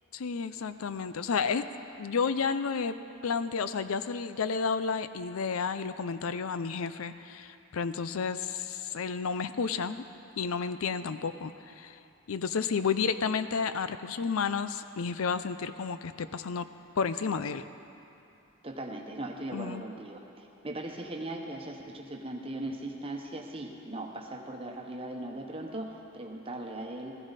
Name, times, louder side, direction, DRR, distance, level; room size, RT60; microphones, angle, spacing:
voice 1, 0.1-1.6 2.0-2.9 3.2-10.0 10.4-12.0 12.3-16.6 17.0-17.6 19.5-19.8, left 5 dB, 85° left, 12 dB, 0.5 m, -31 dB
voice 2, 18.6-27.2, right 1 dB, 25° right, 2 dB, 1.1 m, -39 dB
15.5 x 15.5 x 4.1 m, 2.7 s
head